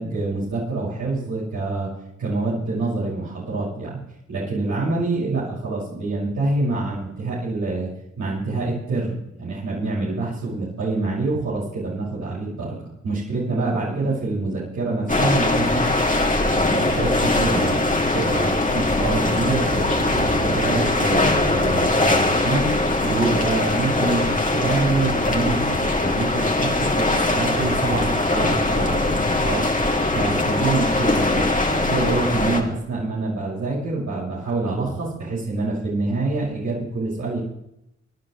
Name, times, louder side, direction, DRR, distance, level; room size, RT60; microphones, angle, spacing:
voice 1, 0.0-1.9 2.2-4.0 4.3-7.9 8.2-12.8 13.0-15.9 16.2-22.7 23.0-29.7 30.1-37.4, right 3 dB, 80° right, -8 dB, 6.3 m, -26 dB
sound 1, 15.1-32.6, left 2 dB, 25° left, 2.5 m, -21 dB
26.0 x 10.0 x 3.3 m, 0.83 s
cardioid pair, 50°, 29 cm